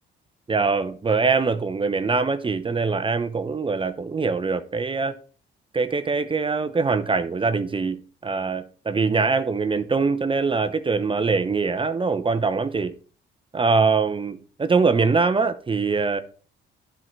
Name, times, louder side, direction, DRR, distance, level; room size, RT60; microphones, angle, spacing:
voice 1, 0.5-5.1 5.7-12.9 13.5-16.2, right 4 dB, 25° right, 0.7 m, -23 dB
11.0 x 4.6 x 6.0 m
cardioid pair, 90°, 20 cm